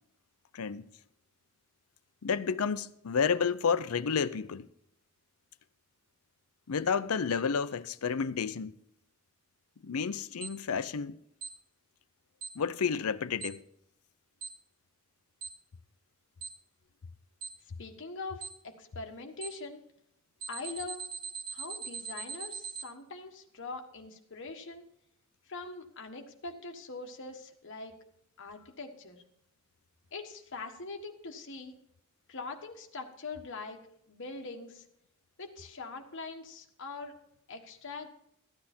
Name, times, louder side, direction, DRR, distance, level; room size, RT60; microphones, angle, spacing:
voice 1, 0.5-0.9 2.2-4.7 6.7-8.7 9.8-11.2 12.6-13.6, left 6 dB, 80° left, 0.5 m, -30 dB
Alarm, 10.4-10.5 11.4-11.5 12.4-12.5 13.4-13.5 14.4-14.5 15.4-15.5 16.4-16.5 17.4-17.5 18.4-18.5 19.4-19.5 20.4-22.8, right 6 dB, 65° right, 1.7 m, -39 dB
voice 2, 17.8-19.8 20.5-21.0 21.5-24.9 25.5-27.9 28.4-29.2 30.1-31.7 32.3-34.8 35.4-37.2 37.5-38.1, left 3 dB, 60° left, 1.4 m, -43 dB
14.0 x 9.8 x 4.3 m
head